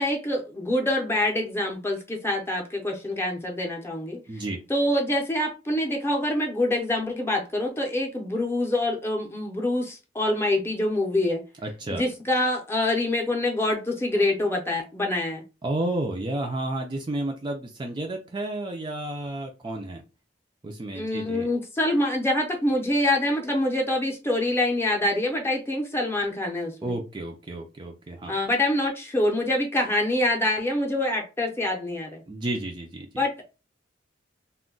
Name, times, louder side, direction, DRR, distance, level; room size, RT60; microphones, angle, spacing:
voice 1, 0.0-4.2 4.7-11.4 11.9-15.4 20.9-26.9 28.3-32.2 33.2-33.4, left 1 dB, 15° left, 1 dB, 0.6 m, -25 dB
voice 2, 4.3-4.6 11.6-12.0 15.6-20.0 20.6-21.5 26.8-28.4 32.3-33.2, right 1 dB, 25° right, 2 dB, 0.4 m, -31 dB
2.2 x 2.1 x 3.7 m, 0.30 s
head